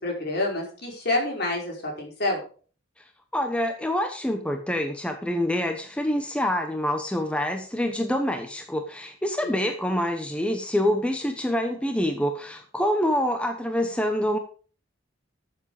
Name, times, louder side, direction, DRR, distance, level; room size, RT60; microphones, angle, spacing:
voice 1, 0.0-2.4 9.4-9.6, left 2 dB, 55° left, 0 dB, 5.3 m, -28 dB
voice 2, 3.3-14.4, left 1 dB, 5° left, 5 dB, 1.0 m, -26 dB
13.5 x 7.5 x 5.0 m, 0.40 s
head